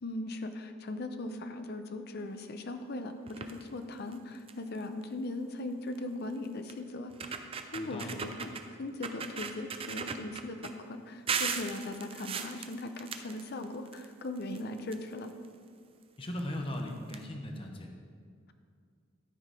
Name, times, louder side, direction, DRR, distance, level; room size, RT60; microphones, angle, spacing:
voice 1, 0.0-7.3 7.7-8.5 8.8-15.3, left 2 dB, 50° left, 8 dB, 0.6 m, -39 dB
sound 1, 3.3-3.6 4.1-4.2 4.5-4.8 5.9-6.0 6.7-6.8 7.1-8.6 9.0-10.7 11.3-14.0 14.3-15.5 16.4-16.5 16.7-16.8 17.1-17.2, right 6 dB, 25° right, 0.4 m, -37 dB
voice 2, 7.7-8.2 16.2-17.9, left 1 dB, 25° left, 2 dB, 0.8 m, -38 dB
12.5 x 4.7 x 4.9 m, 2.2 s
head